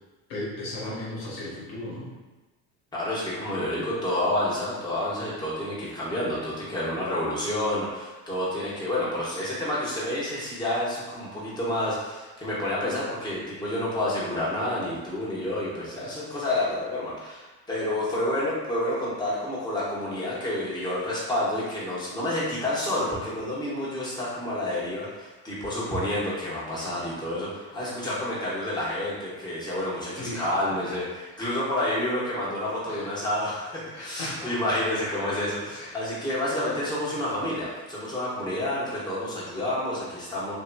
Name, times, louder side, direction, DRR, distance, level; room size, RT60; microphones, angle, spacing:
voice 1, 0.3-2.1 16.0-16.1 30.2-30.4 30.9-31.0 32.9-33.1 33.9-34.5 35.7-36.0 37.1-37.2, left 1 dB, 75° left, -5 dB, 1.1 m, -36 dB
voice 2, 2.9-40.5, left 1 dB, 10° left, -8 dB, 1.0 m, -29 dB
2.8 x 2.7 x 2.2 m, 1.2 s
supercardioid pair, 100°, 42 cm